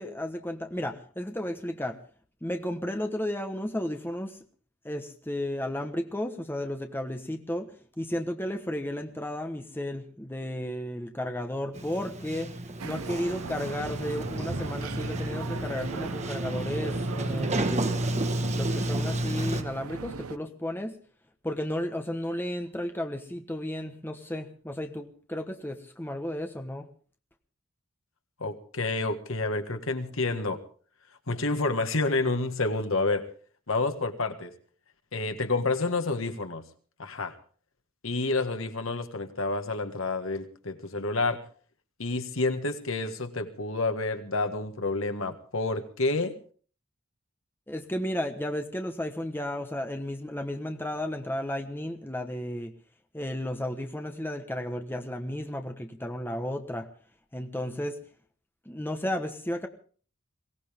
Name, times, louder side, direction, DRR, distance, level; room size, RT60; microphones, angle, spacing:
voice 1, 0.0-2.0 2.4-4.4 4.8-12.6 12.8-18.0 18.6-21.0 21.4-26.9 47.7-52.7 53.1-56.9 57.3-58.0 58.6-59.7, left 1 dB, 10° left, 5 dB, 1.2 m, -33 dB
Sliding door, 11.7-19.6, right 1 dB, 35° right, 1.2 m, -31 dB
sound 1, 12.8-20.4, right 4 dB, 90° right, 0.7 m, -38 dB
voice 2, 28.4-30.6 31.3-33.3 33.7-34.5 35.1-36.6 37.0-37.4 38.0-41.4 42.0-46.4, left 3 dB, 65° left, 7 dB, 1.7 m, -29 dB
22.5 x 17.5 x 3.6 m, 0.43 s
head